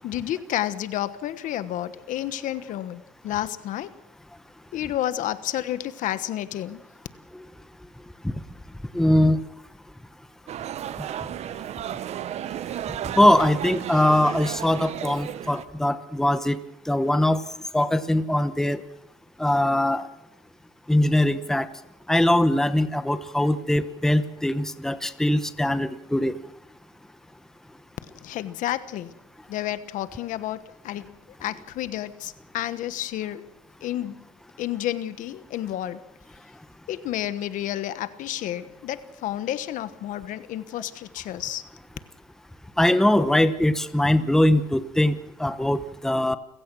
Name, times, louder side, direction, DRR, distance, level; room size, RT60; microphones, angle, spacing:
voice 1, 0.0-4.0 4.7-6.8 28.2-29.1 29.5-30.6 30.8-31.1 31.4-33.5 33.8-34.2 34.6-36.0 36.9-41.6, left 12 dB, 60° left, 14 dB, 1.3 m, -30 dB
voice 2, 8.9-9.4 13.2-16.6 16.9-17.4 17.7-18.8 19.4-20.0 20.9-21.7 22.1-26.3 42.8-45.1 45.4-46.4, left 1 dB, 5° left, 12 dB, 1.0 m, -21 dB
sound 1, 10.5-15.7, right 10 dB, 50° right, 0.9 m, -33 dB
29.5 x 16.0 x 6.2 m, 0.84 s
cardioid pair, 130°, 15 cm